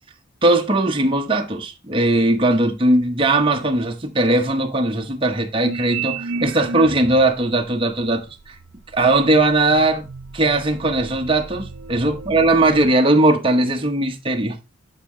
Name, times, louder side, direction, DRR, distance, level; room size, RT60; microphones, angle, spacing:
voice 1, 0.4-8.5 8.9-10.1 10.3-14.6, right 2 dB, 25° right, 0.9 m, -19 dB
sound 1, 5.6-7.3 8.0-12.9, right 4 dB, 70° right, 0.6 m, -33 dB
11.0 x 4.8 x 3.1 m
head